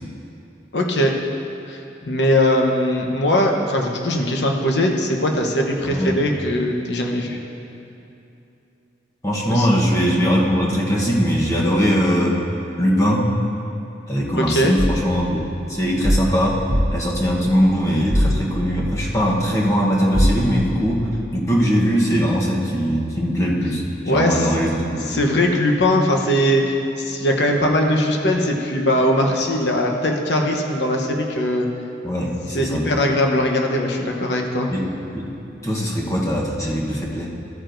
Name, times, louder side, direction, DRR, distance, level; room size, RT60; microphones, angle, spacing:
voice 1, 0.7-1.2 1.7-1.8 2.0-7.4 9.5-9.7 14.3-14.7 24.1-24.5 24.9-31.7 32.5-34.7, left 1 dB, 75° left, 1 dB, 0.9 m, -20 dB
voice 2, 9.2-12.4 12.8-13.3 14.1-16.6 16.9-25.2 32.0-32.8 34.7-35.3 35.6-37.3, equal, 20° left, -3 dB, 1.0 m, -21 dB
sound 1, 14.8-15.1 16.0-17.1 18.1-19.3 20.1-20.6, equal, 55° right, 0.9 m, -21 dB
13.5 x 8.9 x 2.6 m, 2.8 s
head